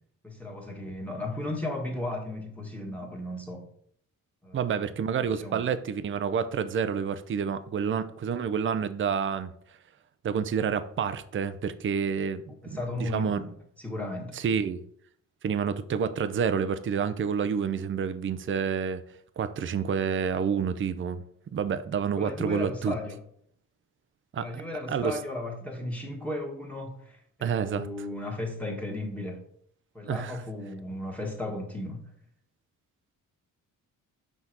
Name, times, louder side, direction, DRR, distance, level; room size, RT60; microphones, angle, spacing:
voice 1, 0.2-3.6 4.4-4.8 5.2-5.6 12.6-14.3 22.1-23.2 24.3-29.4 29.9-32.1, left 1 dB, 5° left, 1.6 m, -35 dB
voice 2, 4.5-9.5 10.2-13.4 14.3-14.8 15.4-19.0 19.4-21.2 21.5-22.9 24.3-24.6 24.9-25.2 27.4-27.9 30.1-30.4, right 7 dB, 40° right, 0.6 m, -29 dB
5.9 x 4.0 x 6.0 m
cardioid pair, 110°, 33 cm